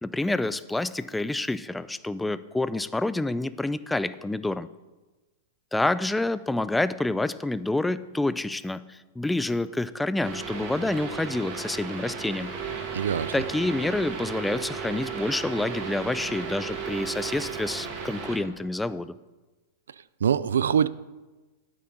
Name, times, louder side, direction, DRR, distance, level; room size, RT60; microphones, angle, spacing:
voice 1, 0.0-4.7 5.7-12.6 13.3-19.1, left 2 dB, 5° left, 0.3 m, -28 dB
sound 1, 10.2-18.4, right 6 dB, 50° right, 1.7 m, -35 dB
voice 2, 12.9-13.3 20.2-20.9, right 8 dB, 85° right, 0.3 m, -23 dB
8.8 x 8.5 x 3.9 m
hypercardioid pair, 120°, 0 cm